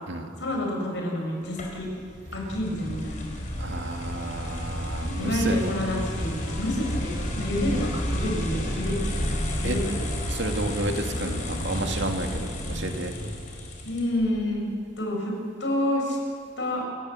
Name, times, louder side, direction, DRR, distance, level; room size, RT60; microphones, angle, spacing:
voice 1, 0.4-1.9 2.3-3.3 5.1-9.3 9.6-9.9 13.8-14.6 15.0-15.3 15.6-16.2 16.6-16.8, left 1 dB, 70° left, 0 dB, 6.4 m, -28 dB
sound 1, 1.6-14.3, equal, 45° left, 4.7 m, -31 dB
voice 2, 3.6-5.8 9.6-9.8 10.3-13.1, right 2 dB, 70° right, 4 dB, 2.3 m, -31 dB
28.5 x 16.0 x 7.6 m, 2.3 s
head